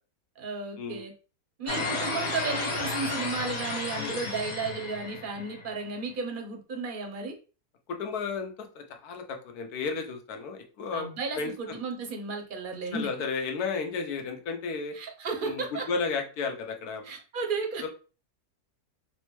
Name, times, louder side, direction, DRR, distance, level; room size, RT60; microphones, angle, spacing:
voice 1, 0.4-1.1 1.6-7.3 10.9-13.1 14.9-15.8 17.0-17.9, right 4 dB, 50° right, 3 dB, 0.6 m, -34 dB
sound 1, 1.7-5.8, left 2 dB, 35° left, 0.5 m, -33 dB
voice 2, 7.9-11.1 11.4-11.8 12.9-14.9 15.4-17.1 17.8-17.9, left 5 dB, 80° left, 5 dB, 1.2 m, -33 dB
4.2 x 2.1 x 3.0 m, 0.35 s
omnidirectional pair, 1.6 m